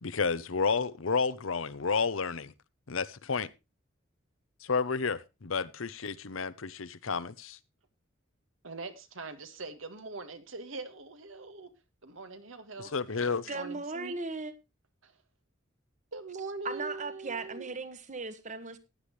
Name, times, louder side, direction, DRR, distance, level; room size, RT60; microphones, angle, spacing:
voice 1, 0.0-2.5 2.9-3.5 4.6-7.6 12.8-13.5, left 5 dB, 90° left, 0.9 m, -31 dB
voice 2, 8.6-11.7 12.0-12.9 13.5-14.2 15.0-15.1 16.1-17.7, right 3 dB, 80° right, 1.8 m, -42 dB
voice 3, 13.5-14.5 16.6-18.8, right 3 dB, 40° right, 1.3 m, -37 dB
15.0 x 10.5 x 3.2 m
head